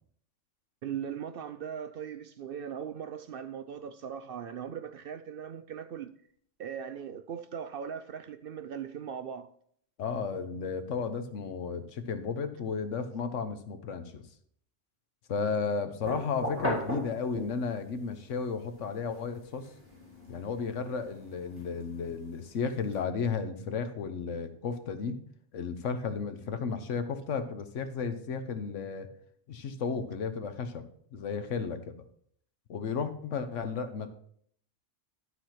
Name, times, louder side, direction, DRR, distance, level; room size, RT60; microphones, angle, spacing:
voice 1, 0.8-6.1 6.6-9.5, right 8 dB, 60° right, 0.6 m, -39 dB
voice 2, 10.0-14.2 15.3-19.6 20.3-25.2 25.5-29.1 29.5-30.8 31.1-32.0 32.7-34.1, left 5 dB, 80° left, 1.2 m, -33 dB
sound 1, 16.0-17.9 18.3-23.0, equal, 10° right, 3.1 m, -39 dB
11.5 x 4.1 x 5.7 m
omnidirectional pair, 1.3 m